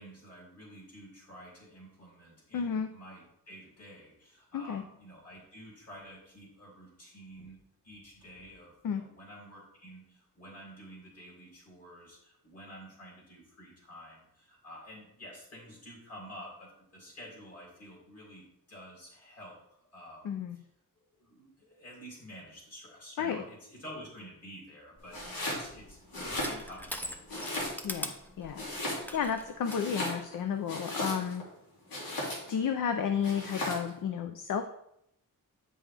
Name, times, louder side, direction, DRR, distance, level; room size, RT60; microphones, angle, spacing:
voice 1, 0.0-18.4 18.7-19.6 19.9-20.6 21.2-27.8, equal, 45° left, -4 dB, 2.9 m, -50 dB
voice 2, 2.5-2.9 4.5-4.8 8.8-9.0 20.2-20.6 23.2-23.4 27.8-28.7 29.1-31.4 32.5-34.7, left 7 dB, 60° left, 7 dB, 0.5 m, -32 dB
Crushing, 25.0-29.8, equal, 5° left, 0.5 m, -43 dB
Domestic sounds home sounds, 25.1-25.7 26.0-26.9 27.3-28.1 28.5-29.3 29.6-31.4 31.9-32.6 33.2-33.9, left 1 dB, 80° left, 2.6 m, -36 dB
8.2 x 5.5 x 3.3 m, 0.78 s
wide cardioid pair, 170°, 36 cm